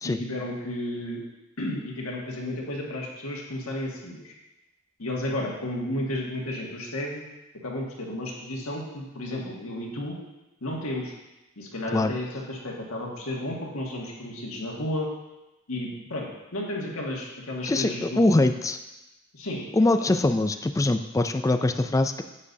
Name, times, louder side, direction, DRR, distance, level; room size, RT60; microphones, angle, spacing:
voice 1, 0.0-1.2 1.6-4.3 5.0-7.2 7.6-10.2 10.6-11.1 11.6-15.1 15.7-18.4 19.3-19.7, left 1 dB, 75° left, -2 dB, 1.8 m, -32 dB
voice 2, 17.6-18.8 19.7-22.2, left 2 dB, 15° left, 8 dB, 0.3 m, -23 dB
9.9 x 8.4 x 2.7 m, 0.99 s
head